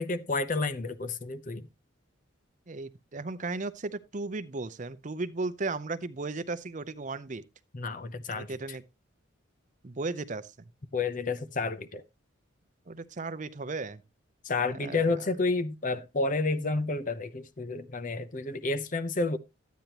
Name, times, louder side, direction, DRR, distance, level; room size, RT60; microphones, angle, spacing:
voice 1, 0.0-1.7 7.7-8.8 10.9-12.0 14.4-19.4, left 3 dB, 40° left, 0.7 m, -30 dB
voice 2, 2.7-7.4 8.3-8.8 9.8-10.5 12.9-14.0 14.8-15.1, right 3 dB, 40° right, 0.6 m, -35 dB
12.0 x 9.3 x 2.9 m
head